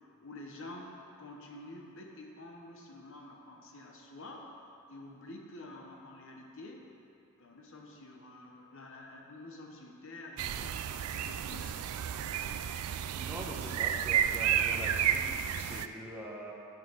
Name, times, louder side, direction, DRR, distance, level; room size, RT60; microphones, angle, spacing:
voice 1, 0.2-4.5 4.9-6.9 7.4-11.8 13.7-13.8, left 2 dB, 60° left, 1 dB, 1.0 m, -48 dB
sound 1, 10.4-15.9, right 9 dB, 90° right, 0.4 m, -32 dB
voice 2, 13.2-16.5, right 1 dB, 10° right, -3 dB, 1.2 m, -43 dB
9.4 x 5.8 x 6.4 m, 2.7 s
head